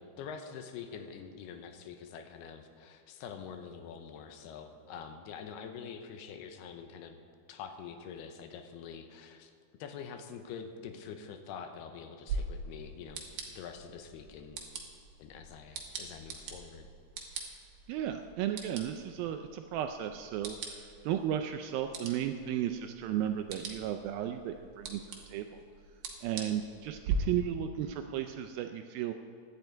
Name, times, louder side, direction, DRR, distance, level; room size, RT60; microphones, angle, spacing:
voice 1, 0.0-7.2 7.5-9.5 9.8-14.6 15.2-16.9, left 7 dB, 80° left, 7 dB, 2.9 m, -45 dB
sound 1, 12.3-27.2, right 6 dB, 60° right, 2.6 m, -43 dB
voice 2, 17.9-25.0 25.3-25.6 26.2-29.1, right 10 dB, 80° right, 7 dB, 2.1 m, -34 dB
16.5 x 11.0 x 4.5 m, 2.4 s
omnidirectional pair, 4.6 m